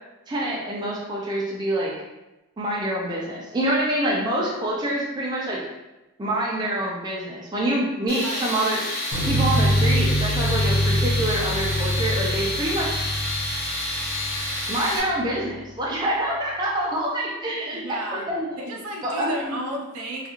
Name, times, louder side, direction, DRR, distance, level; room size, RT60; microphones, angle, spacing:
voice 1, 0.3-1.9 2.6-5.6 6.2-8.8 9.3-13.0 14.7-18.5 19.0-19.6, right 1 dB, 20° right, -4 dB, 0.3 m, -26 dB
Tools, 8.1-15.0, left 1 dB, 45° left, 0.7 m, -29 dB
voice 2, 8.2-8.5 17.7-18.3 18.6-20.3, right 1 dB, 75° right, 0 dB, 0.5 m, -33 dB
sound 1, 9.1-14.6, equal, 70° left, 1.1 m, -24 dB
2.3 x 2.3 x 2.9 m, 1.0 s
head